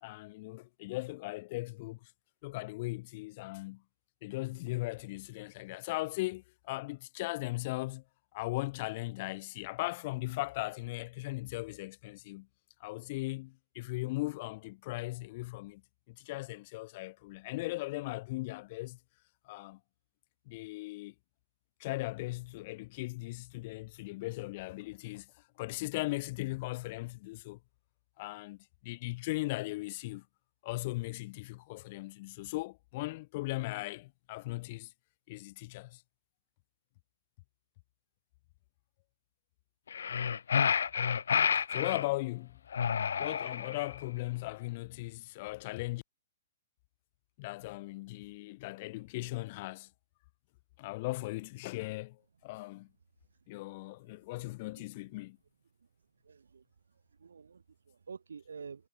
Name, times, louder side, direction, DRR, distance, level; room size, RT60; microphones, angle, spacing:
voice 1, 0.0-2.1 2.4-3.8 4.2-8.0 8.3-12.5 12.8-15.8 16.1-19.0 19.4-19.8 20.5-21.1 21.8-25.3 25.6-27.6 28.2-30.2 30.6-34.9 35.3-36.0 41.5-42.6 43.2-46.0 47.4-49.9 50.8-52.9 53.5-55.4, left 21 dB, 45° left, 2.6 m, -38 dB
sound 1, 39.9-42.1 42.7-44.0, left 7 dB, 70° left, 0.7 m, -30 dB
voice 2, 56.2-56.6 57.2-58.9, right 5 dB, 80° right, 5.2 m, -48 dB
hypercardioid pair, 125°, 0 cm